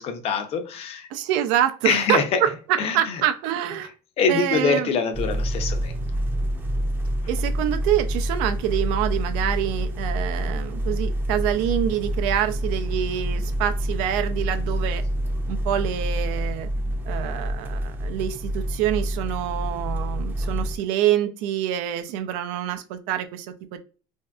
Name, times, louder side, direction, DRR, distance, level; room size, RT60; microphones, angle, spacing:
voice 1, 0.0-1.1 1.8-2.4 2.8-3.2 4.2-5.9, left 5 dB, 50° left, 0.6 m, -24 dB
voice 2, 1.1-3.9 4.3-4.9 7.3-15.0 15.5-16.7 17.1-23.5 23.7-23.8, right 11 dB, 75° right, 0.4 m, -26 dB
sound 1, 5.1-20.8, equal, 15° right, 0.6 m, -27 dB
3.1 x 2.6 x 2.3 m
supercardioid pair, 100°, 13 cm